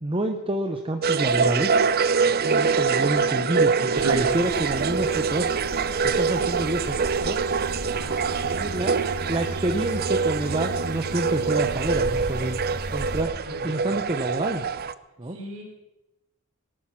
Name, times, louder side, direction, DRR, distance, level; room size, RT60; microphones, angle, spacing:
voice 1, 0.0-1.8 2.4-5.5 6.0-7.0 7.2-7.4 8.5-8.9 9.3-12.6 12.9-13.3 13.6-14.7 15.2-15.4, right 1 dB, 25° right, 4 dB, 1.0 m, -28 dB
sound 1, 1.0-14.9, right 5 dB, 45° right, 0.6 m, -25 dB
voice 2, 2.2-2.6 7.9-8.9 13.3-14.0 15.2-15.6, equal, 65° right, -1 dB, 4.5 m, -41 dB
sound 2, 4.0-13.2, right 1 dB, 90° right, 1.8 m, -34 dB
19.5 x 11.0 x 5.9 m, 0.96 s
head